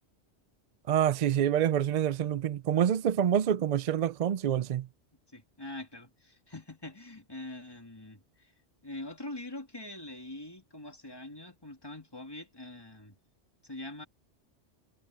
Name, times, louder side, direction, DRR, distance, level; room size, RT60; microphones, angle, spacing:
voice 1, 0.9-4.9, right 9 dB, 60° right, 0.4 m, -27 dB
voice 2, 5.3-8.5 8.8-13.1 13.6-14.1, left 1 dB, 20° left, 2.7 m, -44 dB
omnidirectional pair, 1.2 m